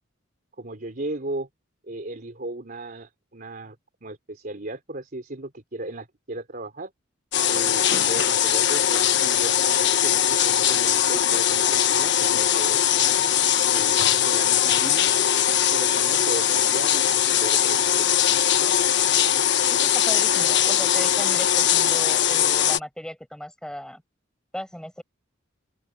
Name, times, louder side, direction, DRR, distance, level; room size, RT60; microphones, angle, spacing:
voice 1, 0.6-1.5 1.8-6.9 7.5-13.1 13.7-14.0 14.2-15.1 15.7-18.2, right 2 dB, 45° right, 3.5 m, -36 dB
sound 1, 7.3-22.8, left 10 dB, 60° left, 1.3 m, -21 dB
voice 2, 19.7-24.0 24.5-25.0, equal, 5° left, 7.5 m, -36 dB
head